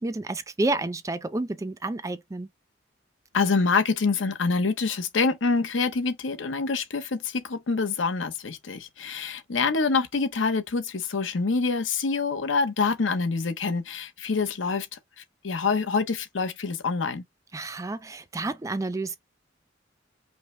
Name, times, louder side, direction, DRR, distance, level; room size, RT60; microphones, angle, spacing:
voice 1, 0.0-2.5 17.5-19.2, right 2 dB, 15° right, 0.4 m, -30 dB
voice 2, 3.3-14.9 15.2-17.2, left 4 dB, 80° left, 0.7 m, -26 dB
5.4 x 2.1 x 3.1 m
head